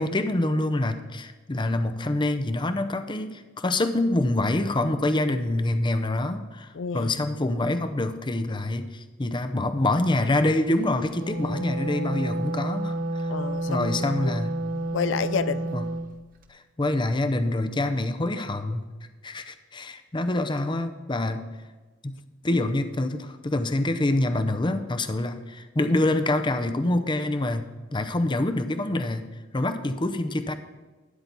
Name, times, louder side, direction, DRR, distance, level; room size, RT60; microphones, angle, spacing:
voice 1, 0.0-13.3 13.7-14.5 15.7-15.8 16.5-18.9 19.2-21.4 22.0-22.1 22.4-29.3 29.5-30.5, left 2 dB, 25° left, 0.7 m, -26 dB
voice 2, 6.7-7.1 13.3-13.9 14.2-14.3 14.7-15.7, left 5 dB, 80° left, 0.5 m, -29 dB
Wind instrument woodwind instrument, 10.9-16.1, right 1 dB, 50° right, 1.0 m, -30 dB
13.0 x 9.6 x 4.1 m
head